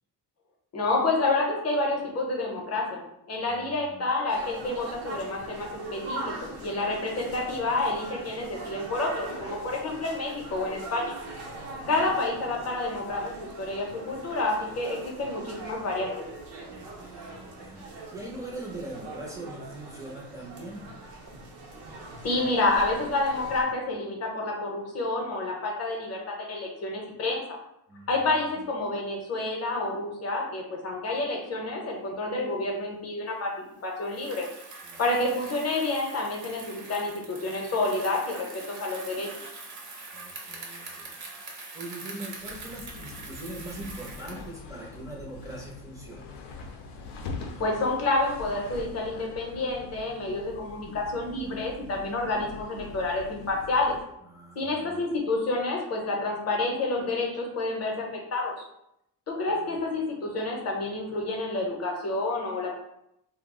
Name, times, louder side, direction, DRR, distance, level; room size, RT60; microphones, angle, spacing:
voice 1, 0.7-6.3 6.6-11.2 11.9-16.1 22.2-27.4 28.1-33.5 33.8-34.5 35.0-39.3 47.6-54.0 54.6-58.5 59.3-62.7, left 2 dB, 40° left, 0 dB, 0.6 m, -29 dB
voice 2, 3.4-4.1 11.8-12.2 16.7-20.8 27.9-28.6 34.8-35.0 40.1-41.1 41.7-46.4 54.3-55.1 59.5-59.8, right 2 dB, 10° right, -3 dB, 0.4 m, -42 dB
sound 1, 4.3-23.6, right 2 dB, 80° right, 0.7 m, -41 dB
Bicycle, 34.0-44.5, right 3 dB, 50° right, 0.6 m, -43 dB
sound 2, 42.4-54.1, left 4 dB, 80° left, 0.5 m, -43 dB
2.3 x 2.0 x 3.5 m, 0.79 s
cardioid pair, 165°, 41 cm